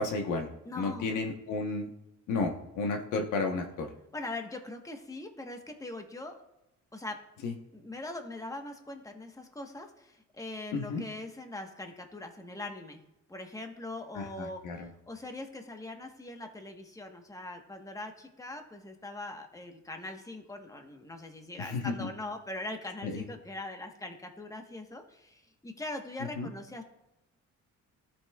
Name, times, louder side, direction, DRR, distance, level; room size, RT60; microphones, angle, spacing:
voice 1, 0.0-0.5 0.7-1.9 2.3-3.9 7.4-7.5 10.7-11.0 14.1-14.9 21.6-22.1 23.0-23.2 26.4-26.5, left 3 dB, 85° left, 3 dB, 1.1 m, -32 dB
voice 2, 0.6-1.1 4.1-6.4 6.9-7.2 7.7-13.0 13.3-26.8, left 2 dB, 10° left, 4 dB, 1.2 m, -41 dB
14.0 x 5.8 x 2.3 m, 0.88 s
cardioid pair, 90°, 30 cm